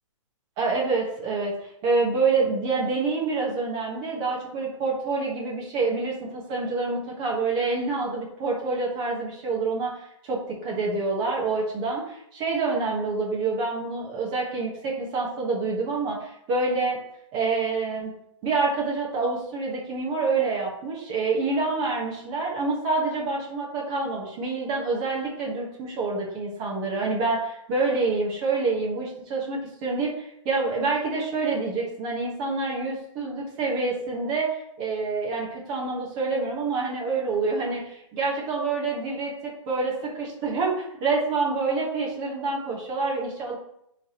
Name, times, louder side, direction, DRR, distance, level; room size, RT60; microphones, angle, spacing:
voice 1, 0.6-1.5 1.8-17.0 17.3-18.1 18.4-43.5, right 3 dB, 15° right, -3 dB, 1.2 m, -27 dB
9.3 x 3.4 x 3.0 m, 0.76 s
hypercardioid pair, 175°, 17 cm